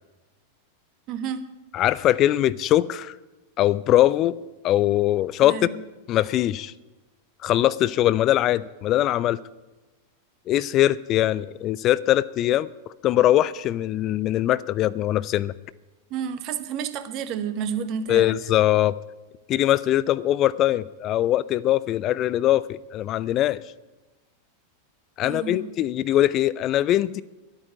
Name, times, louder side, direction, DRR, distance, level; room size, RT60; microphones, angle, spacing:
voice 1, 1.1-1.5 5.4-5.7 16.1-18.3 25.2-25.6, right 7 dB, 40° right, 1.1 m, -30 dB
voice 2, 1.7-3.2 3.6-4.4 4.6-5.7 6.1-6.7 7.4-9.4 10.5-12.7 13.0-15.5 18.1-19.0 19.5-23.6 25.2-27.2, left 13 dB, 35° left, 0.4 m, -21 dB
12.0 x 8.9 x 9.5 m
figure-of-eight pair, 90°, 0 cm